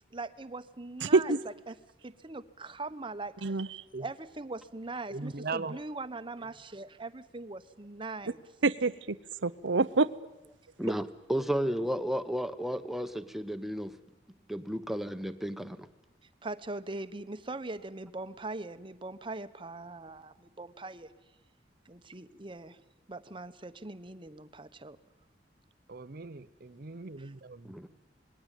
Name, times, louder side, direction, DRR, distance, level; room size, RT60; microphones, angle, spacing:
voice 1, 0.1-1.4 1.7-1.8 2.0-3.6 4.0-8.4 16.4-21.1 21.8-22.8 23.1-25.0 27.2-27.3, right 2 dB, 30° right, 11 dB, 1.1 m, -41 dB
voice 2, 1.0-1.4 3.4-3.8 8.6-9.2 9.4-10.1, right 3 dB, 90° right, 16 dB, 0.8 m, -26 dB
voice 3, 5.1-5.8 25.9-27.6, right 4 dB, 55° right, 12 dB, 0.8 m, -39 dB
voice 4, 11.3-13.9 14.5-15.9 27.7-27.9, equal, ahead, 9 dB, 1.2 m, -32 dB
27.0 x 20.5 x 9.2 m, 1.0 s
head